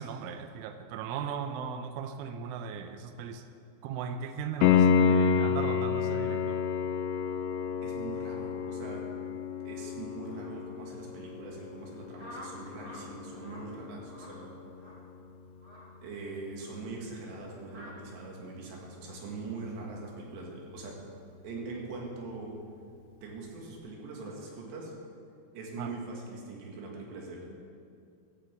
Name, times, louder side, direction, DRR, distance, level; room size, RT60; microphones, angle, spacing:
voice 1, 0.0-3.4 3.8-6.6 25.8-25.9, right 7 dB, 85° right, 8 dB, 3.2 m, -38 dB
Piano, 4.6-15.3 18.6-18.7, left 7 dB, 90° left, 2.3 m, -30 dB
voice 2, 7.8-9.1 9.7-14.6 16.0-21.0 21.4-22.6 23.2-24.9 25.5-27.5, right 3 dB, 70° right, -1 dB, 3.9 m, -42 dB
sound 1, 12.2-13.0 13.3-13.6 14.1-14.4 14.7-15.0 15.6-15.8 16.6-16.8 17.7-17.9, left 1 dB, 30° right, 0.6 m, -48 dB
15.5 x 13.5 x 3.5 m, 2.5 s
omnidirectional pair, 5.5 m